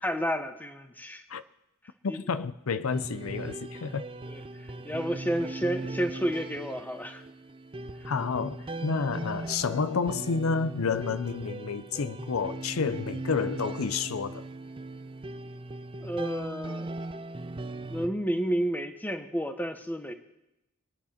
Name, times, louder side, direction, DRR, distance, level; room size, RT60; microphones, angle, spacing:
voice 1, 0.0-1.2 2.1-2.2 4.3-4.4 4.8-7.2 16.0-17.0 17.9-20.1, equal, 10° left, 1.0 m, -31 dB
voice 2, 2.0-4.1 8.0-14.4, left 5 dB, 85° left, 0.6 m, -30 dB
sound 1, 2.9-18.1, right 2 dB, 25° right, 0.6 m, -39 dB
24.0 x 9.5 x 4.3 m
head